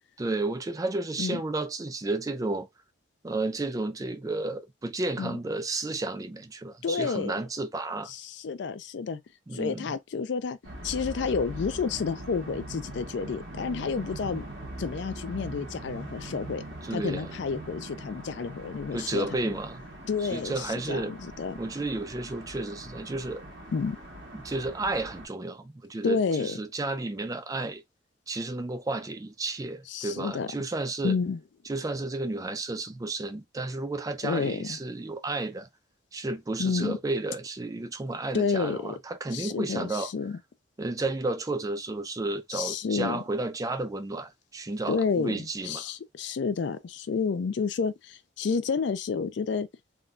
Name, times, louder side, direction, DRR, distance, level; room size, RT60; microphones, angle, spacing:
voice 1, 0.2-2.7 3.2-8.1 9.5-9.9 16.8-17.3 18.9-19.8 20.3-21.2 21.6-23.5 24.3-27.8 28.3-31.2 31.7-35.7 36.1-40.1 40.8-45.9, right 2 dB, 20° right, 0.3 m, -32 dB
voice 2, 6.8-7.4 8.1-9.2 9.5-10.6 10.8-14.5 14.8-16.6 16.9-19.5 20.1-21.6 23.7-24.0 26.0-26.6 29.9-30.5 31.0-31.4 34.2-34.8 36.6-37.0 38.3-38.9 39.3-40.4 42.5-43.2 44.9-49.7, left 5 dB, 60° left, 0.4 m, -30 dB
sound 1, 10.6-25.3, right 1 dB, 65° right, 1.2 m, -42 dB
3.6 x 2.2 x 2.4 m
head